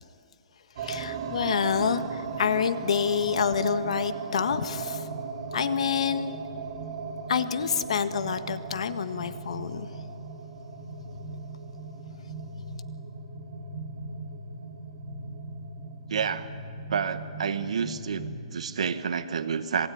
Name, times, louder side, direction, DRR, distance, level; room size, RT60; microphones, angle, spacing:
voice 1, 0.8-5.1 5.5-6.3 7.3-9.9, left 7 dB, 75° left, 11 dB, 1.6 m, -27 dB
sound 1, 0.8-18.4, right 4 dB, 55° right, 2.7 m, -37 dB
voice 2, 16.1-16.5 16.9-19.9, right 6 dB, 80° right, 10 dB, 1.5 m, -29 dB
26.0 x 21.0 x 9.6 m, 2.3 s
hypercardioid pair, 155°, 3 cm